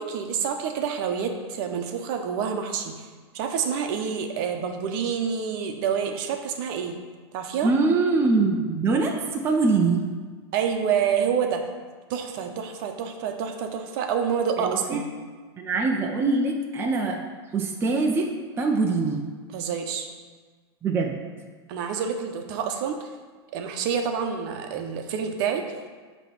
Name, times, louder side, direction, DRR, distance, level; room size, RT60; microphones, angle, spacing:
voice 1, 0.0-3.1 3.3-7.0 7.3-7.7 10.5-11.6 12.1-15.1 19.5-20.1 21.7-23.1 23.5-25.6, right 7 dB, 50° right, 5 dB, 0.9 m, -28 dB
voice 2, 7.6-10.0 14.6-15.0 15.6-17.2 17.5-18.3 18.6-19.2 20.8-21.2, right 3 dB, 15° right, 1 dB, 0.6 m, -23 dB
8.9 x 3.1 x 5.9 m, 1.5 s
supercardioid pair, 135°, 14 cm